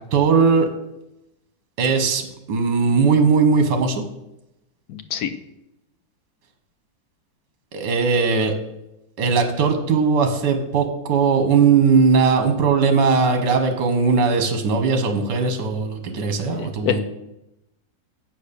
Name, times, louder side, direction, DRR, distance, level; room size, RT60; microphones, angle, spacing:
voice 1, 0.1-0.7 1.8-4.0 7.7-8.5 9.2-17.0, right 5 dB, 65° right, 7 dB, 1.8 m, -19 dB
voice 2, 4.9-5.3 16.5-17.0, left 10 dB, 70° left, 10 dB, 0.9 m, -26 dB
7.8 x 6.4 x 6.8 m, 0.89 s
omnidirectional pair, 2.0 m